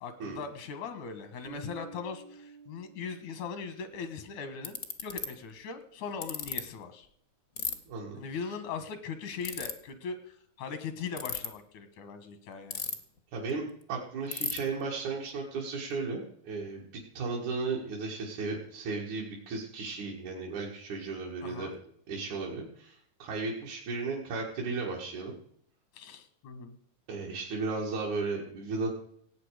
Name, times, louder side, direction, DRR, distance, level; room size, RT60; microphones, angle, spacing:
voice 1, 0.0-7.1 8.2-12.8 21.4-21.8 25.9-26.8, left 5 dB, 85° left, 10 dB, 2.8 m, -40 dB
Bass guitar, 1.4-3.9, right 6 dB, 50° right, 1.3 m, -50 dB
Ratchet pawl, 3.9-4.0 4.6-5.3 6.2-6.6 7.6-7.7 9.4-9.7 11.1-11.5 12.7-13.2 13.5-13.6 13.8-13.9 14.3-14.6, left 6 dB, 65° left, 0.8 m, -33 dB
voice 2, 7.9-8.5 13.3-13.6 13.9-21.8 22.1-25.3 27.1-28.9, right 4 dB, 80° right, -3 dB, 3.4 m, -35 dB
17.0 x 8.8 x 4.9 m, 0.66 s
omnidirectional pair, 3.4 m